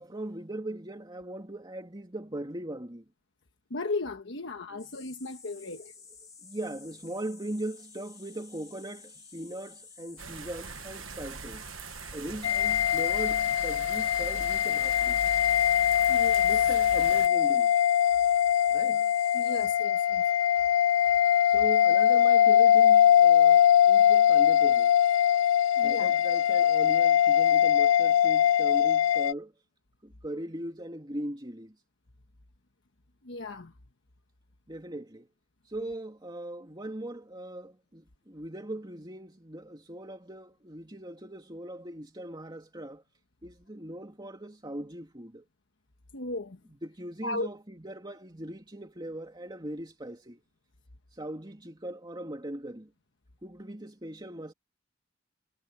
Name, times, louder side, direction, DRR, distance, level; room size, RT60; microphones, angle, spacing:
voice 1, 0.0-3.0 4.7-5.0 5.5-6.1 6.4-11.7 12.1-15.2 16.5-17.8 18.7-19.1 21.4-25.0 25.8-29.5 30.0-31.7 34.7-35.3 35.7-43.0 43.4-45.4 46.7-50.4 51.1-52.9 53.4-54.5, right 1 dB, 20° right, 2.7 m, -40 dB
voice 2, 3.7-5.9 16.1-16.5 19.3-20.2 25.8-26.1 33.2-33.7 46.1-46.6 47.2-47.5, left 2 dB, 65° left, 1.3 m, -35 dB
sound 1, 4.8-19.7, left 5 dB, 20° left, 2.7 m, -51 dB
sound 2, 10.2-17.3, right 4 dB, 90° right, 1.3 m, -42 dB
sound 3, 12.4-29.3, left 10 dB, 90° left, 0.4 m, -22 dB
head